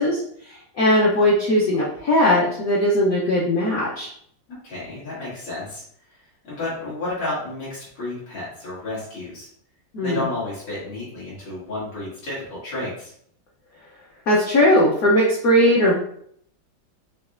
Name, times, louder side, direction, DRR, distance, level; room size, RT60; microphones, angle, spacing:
voice 1, 0.0-4.1 9.9-10.2 14.3-16.0, left 1 dB, 65° left, -4 dB, 0.9 m, -19 dB
voice 2, 4.5-6.2 6.4-9.5 10.0-13.1, left 2 dB, 80° left, -9 dB, 2.5 m, -31 dB
5.1 x 2.9 x 2.5 m, 0.66 s
omnidirectional pair, 2.3 m